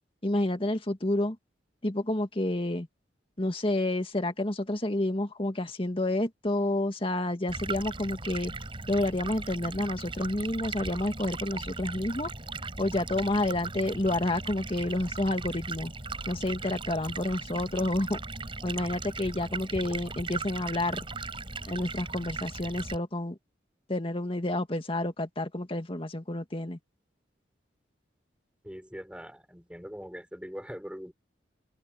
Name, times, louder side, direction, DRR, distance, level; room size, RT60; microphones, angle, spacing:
voice 1, 0.2-1.4 1.8-2.9 3.4-8.5 8.9-12.3 12.8-15.9 16.3-18.2 18.6-21.0 21.6-23.4 23.9-26.8, left 1 dB, 30° left, 2.0 m, -29 dB
Stream, 7.5-23.0, right 3 dB, 30° right, 4.9 m, -38 dB
voice 2, 28.6-31.1, equal, 5° right, 5.7 m, -42 dB
head